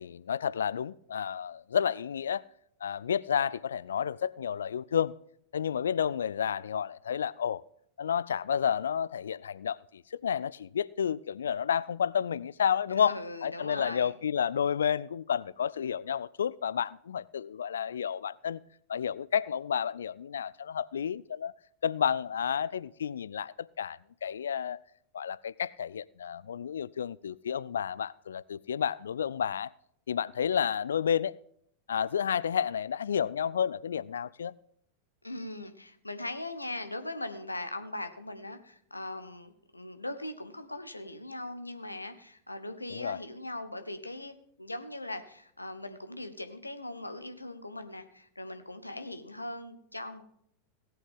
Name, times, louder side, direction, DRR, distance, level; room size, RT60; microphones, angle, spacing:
voice 1, 0.0-2.4 2.8-5.1 5.5-7.6 8.0-18.6 18.9-21.5 21.8-24.8 25.1-29.7 30.1-31.4 31.9-34.5 42.9-43.2, left 8 dB, 65° left, 0.4 m, -31 dB
voice 2, 13.0-14.1 35.2-50.2, left 1 dB, 85° left, 1.2 m, -40 dB
18.0 x 8.5 x 3.7 m
figure-of-eight pair, 90°, 0 cm